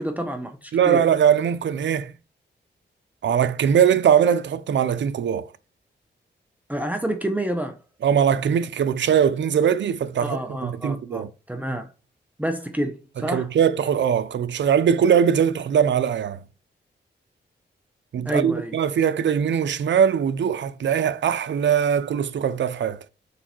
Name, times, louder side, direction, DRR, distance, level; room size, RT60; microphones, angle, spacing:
voice 1, 0.0-1.0 6.7-7.8 10.2-11.9 12.4-13.5 18.2-18.8, right 1 dB, 10° right, 1.0 m, -28 dB
voice 2, 0.7-2.1 3.2-5.5 8.0-11.3 13.3-16.4 18.1-23.0, right 8 dB, 80° right, 0.7 m, -21 dB
6.9 x 4.8 x 4.5 m
cardioid pair, 80°, 19 cm